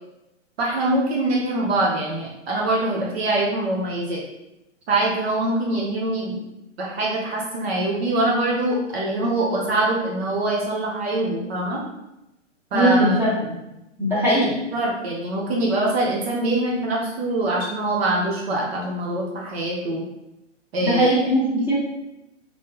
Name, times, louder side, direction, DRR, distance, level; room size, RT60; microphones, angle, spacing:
voice 1, 0.6-4.2 4.9-6.4 6.8-11.8 12.7-13.2 14.7-20.0 20.7-21.1, right 2 dB, 55° right, -4 dB, 1.0 m, -24 dB
voice 2, 12.7-13.3 14.0-14.5 20.8-21.7, equal, 5° right, -11 dB, 1.6 m, -19 dB
3.8 x 3.1 x 3.9 m, 0.92 s
hypercardioid pair, 150°, 38 cm